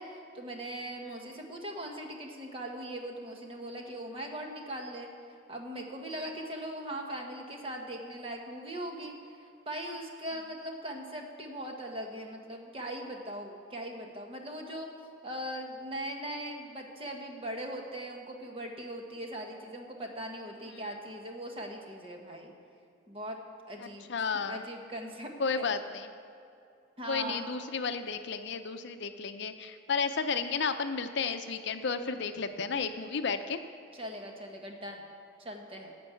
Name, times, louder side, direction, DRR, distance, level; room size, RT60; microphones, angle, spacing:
voice 1, 0.0-5.1 5.5-14.9 15.2-22.5 23.1-23.4 23.7-24.1 24.3-25.7 27.0-27.4 33.9-35.0 35.4-35.9, right 1 dB, 30° right, 1 dB, 1.3 m, -40 dB
voice 2, 23.8-24.6 25.4-26.1 27.1-33.6, left 5 dB, 60° left, 8 dB, 0.6 m, -33 dB
16.0 x 5.3 x 8.4 m, 2.5 s
head